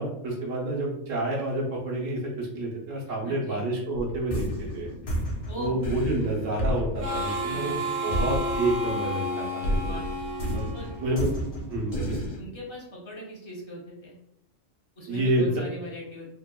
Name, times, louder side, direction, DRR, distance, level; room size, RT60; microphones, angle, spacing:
voice 1, 0.0-4.9 5.6-10.0 10.5-10.7 11.0-11.3 11.7-12.2 15.1-15.5, right 1 dB, 85° right, -1 dB, 1.1 m, -29 dB
voice 2, 3.2-3.7 5.5-5.7 7.5-7.8 9.8-10.1 10.7-10.9 12.1-14.1 15.0-16.3, equal, 35° left, -3 dB, 0.5 m, -40 dB
sound 1, 3.9-9.3 9.6-12.4, equal, 85° left, 1.1 m, -31 dB
Harmonica, 7.0-11.5, equal, 60° right, 0.9 m, -31 dB
3.0 x 2.1 x 2.2 m, 0.79 s
omnidirectional pair, 1.3 m